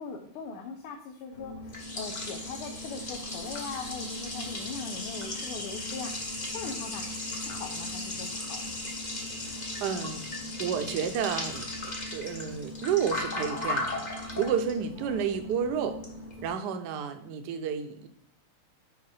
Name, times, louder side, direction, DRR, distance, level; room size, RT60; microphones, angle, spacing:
voice 1, 0.0-8.8 15.1-15.4, left 5 dB, 90° left, 4 dB, 1.6 m, -41 dB
Liquid, 1.3-16.5, left 2 dB, 35° left, 0.7 m, -36 dB
voice 2, 9.5-10.2 10.6-11.7 12.1-16.0 16.4-18.1, right 7 dB, 70° right, 8 dB, 1.1 m, -31 dB
5.6 x 4.8 x 4.8 m, 0.65 s
omnidirectional pair, 2.4 m